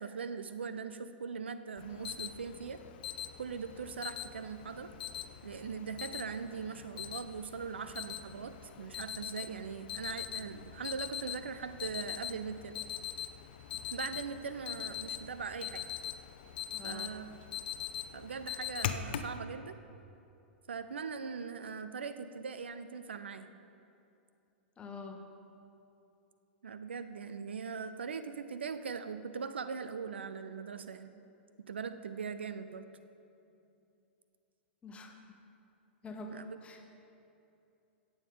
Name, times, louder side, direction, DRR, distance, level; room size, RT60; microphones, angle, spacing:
voice 1, 0.0-2.8 3.4-4.9 5.4-12.8 13.9-15.8 16.8-17.3 18.1-19.8 20.7-23.5 26.6-31.1 31.7-32.8 36.3-36.6, right 5 dB, 75° right, 11 dB, 0.5 m, -40 dB
Alarm, 1.8-19.4, left 10 dB, 55° left, 0.6 m, -42 dB
voice 2, 16.7-17.1 24.8-25.2 34.8-35.1 36.0-36.8, left 3 dB, 20° left, 3 dB, 1.2 m, -46 dB
17.0 x 7.2 x 3.9 m, 2.7 s
figure-of-eight pair, 100°, 6 cm